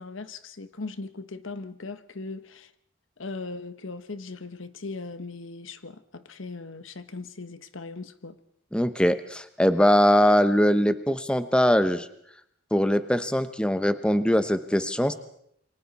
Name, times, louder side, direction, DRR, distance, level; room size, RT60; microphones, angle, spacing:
voice 1, 0.0-2.7 3.2-8.4, left 3 dB, 80° left, 1.2 m, -39 dB
voice 2, 8.7-12.1 12.7-15.1, equal, 5° left, 0.8 m, -22 dB
28.0 x 24.0 x 4.2 m
head